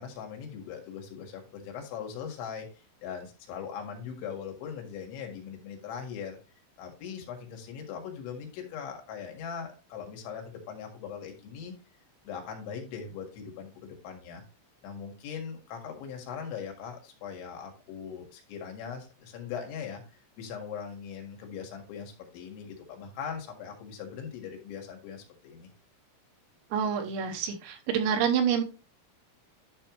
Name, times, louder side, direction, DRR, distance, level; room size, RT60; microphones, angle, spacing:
voice 1, 0.0-6.4 6.8-11.7 12.3-14.4 14.8-20.0 20.4-25.7, left 7 dB, 75° left, 4.0 m, -40 dB
voice 2, 26.7-28.6, right 7 dB, 80° right, 3.2 m, -27 dB
11.0 x 5.6 x 3.1 m
omnidirectional pair, 5.6 m